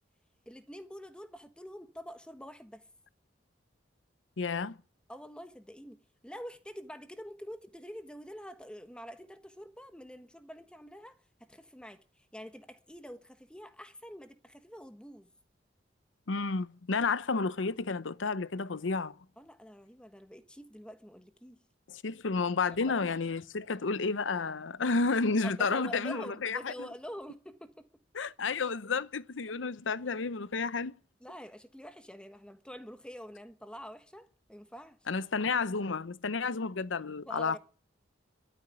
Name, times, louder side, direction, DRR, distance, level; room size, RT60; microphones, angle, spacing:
voice 1, 0.5-2.8 5.1-15.3 19.4-21.6 25.4-27.8 31.2-35.0 37.3-37.6, equal, 5° left, 1.3 m, -46 dB
voice 2, 4.4-4.8 16.3-19.2 21.9-26.9 28.1-30.9 35.1-37.6, left 4 dB, 90° left, 0.7 m, -31 dB
13.0 x 8.8 x 10.0 m
head